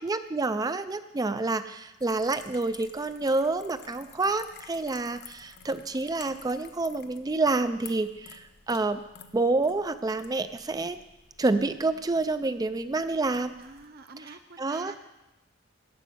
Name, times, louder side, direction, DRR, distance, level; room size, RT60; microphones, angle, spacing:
voice 1, 0.0-9.0 9.3-11.0 11.4-13.5 14.6-15.0, right 3 dB, 15° right, 11 dB, 0.4 m, -28 dB
sound 1, 2.0-13.9, left 7 dB, 50° left, 0.8 m, -51 dB
voice 2, 13.6-15.0, right 4 dB, 45° right, 7 dB, 0.7 m, -47 dB
14.0 x 5.1 x 9.1 m, 0.95 s
head